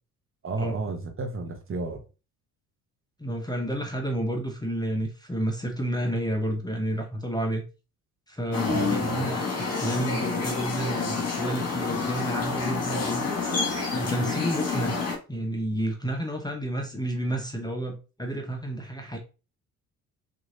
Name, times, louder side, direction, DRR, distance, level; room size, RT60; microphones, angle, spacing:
voice 1, 0.4-2.0 8.7-9.2, right 3 dB, 30° right, 1.0 m, -32 dB
voice 2, 3.2-7.6 8.3-13.3 13.9-15.0 15.3-19.2, right 1 dB, 10° left, 0.9 m, -30 dB
sound 1, 8.5-15.2, left 4 dB, 35° left, 1.8 m, -28 dB
6.0 x 2.8 x 2.5 m
figure-of-eight pair, 50°, 44 cm